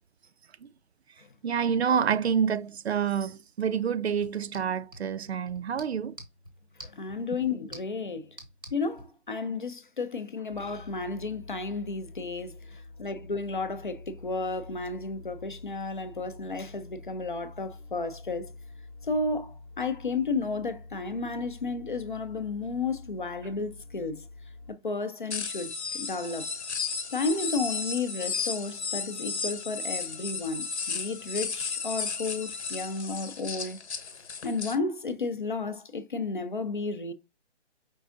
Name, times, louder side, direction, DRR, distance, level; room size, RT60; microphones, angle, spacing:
voice 1, 1.4-6.2, right 7 dB, 65° right, 0.5 m, -27 dB
sound 1, 4.1-9.1, right 1 dB, 20° right, 0.7 m, -50 dB
voice 2, 6.8-8.3 8.7-18.5 19.1-24.2 24.7-26.5 27.1-33.8 34.4-37.1, left 3 dB, 45° left, 0.5 m, -32 dB
sound 2, 10.5-24.7, left 3 dB, 20° left, 1.0 m, -47 dB
sound 3, 25.3-34.8, left 5 dB, 70° left, 1.0 m, -34 dB
5.3 x 3.5 x 2.5 m
hypercardioid pair, 175°, 35 cm